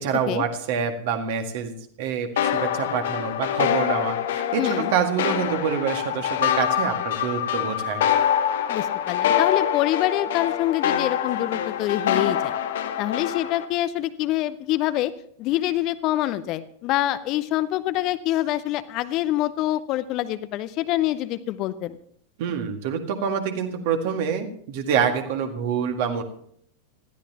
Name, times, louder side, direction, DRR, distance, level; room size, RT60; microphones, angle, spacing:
voice 1, 0.0-8.1 22.4-26.2, right 7 dB, 50° right, 5 dB, 1.9 m, -26 dB
sound 1, 2.4-13.6, left 9 dB, 60° left, 1.1 m, -25 dB
voice 2, 4.6-4.9 8.7-12.5 13.0-15.1 15.4-22.0, left 14 dB, 40° left, 13 dB, 0.7 m, -25 dB
20.0 x 13.5 x 2.9 m, 0.64 s
figure-of-eight pair, 90°, 0 cm